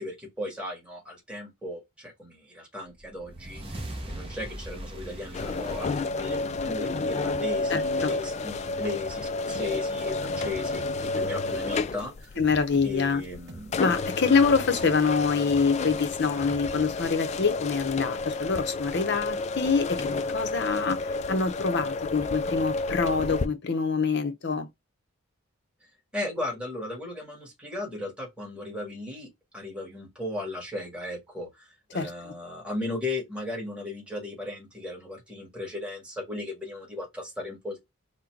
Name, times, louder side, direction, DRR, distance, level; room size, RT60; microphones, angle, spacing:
voice 1, 0.0-12.4 12.8-13.8 26.1-37.8, left 2 dB, 5° right, 1.7 m, -36 dB
sound 1, 3.0-7.5, right 1 dB, 25° right, 0.9 m, -40 dB
sound 2, 5.3-23.5, left 3 dB, 35° left, 0.3 m, -31 dB
voice 2, 7.7-8.1 12.4-13.2 13.8-24.7 31.9-32.3, left 5 dB, 55° left, 0.7 m, -25 dB
sound 3, 9.5-17.3, right 3 dB, 55° right, 0.7 m, -47 dB
3.9 x 2.2 x 4.4 m
head